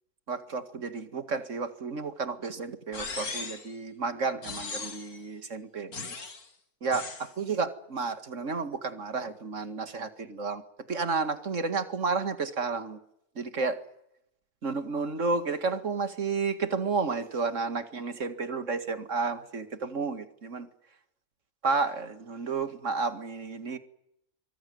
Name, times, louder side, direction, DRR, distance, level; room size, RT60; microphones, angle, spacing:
voice 1, 0.3-5.9 6.8-10.6 10.9-13.0 13.4-13.8 14.6-20.7 21.6-23.8, right 4 dB, 55° right, 10 dB, 2.3 m, -31 dB
sound 1, 2.9-3.7 4.4-5.2 5.9-6.5 6.9-7.3, left 4 dB, 80° left, 3.0 m, -38 dB
25.5 x 24.0 x 9.4 m, 0.79 s
omnidirectional pair, 1.6 m